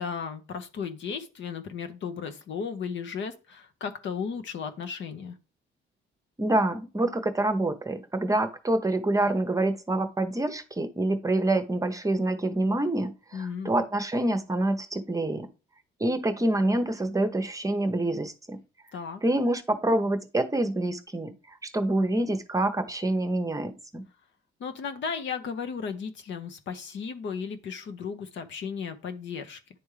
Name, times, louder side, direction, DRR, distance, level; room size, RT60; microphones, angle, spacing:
voice 1, 0.0-5.3 13.3-13.7 18.9-19.2 24.6-29.6, left 6 dB, 70° left, 7 dB, 0.9 m, -35 dB
voice 2, 6.4-15.5 16.0-18.6 19.2-24.0, right 1 dB, 15° right, 8 dB, 0.8 m, -26 dB
10.0 x 3.5 x 3.2 m, 0.32 s
cardioid pair, 90°, 20 cm